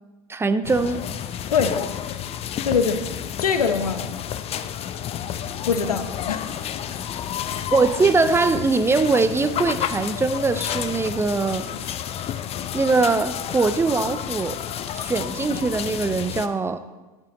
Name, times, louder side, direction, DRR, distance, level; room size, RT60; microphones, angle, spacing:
voice 1, 0.3-1.0 7.7-11.7 12.7-14.6 14.9-16.8, right 3 dB, 15° right, 0.5 m, -22 dB
sound 1, 0.6-16.5, left 10 dB, 35° left, 0.5 m, -31 dB
voice 2, 1.5-1.8 2.6-3.1 3.4-4.1 5.7-7.2, left 5 dB, 85° left, 0.8 m, -24 dB
8.9 x 8.3 x 4.0 m
hypercardioid pair, 80°, 19 cm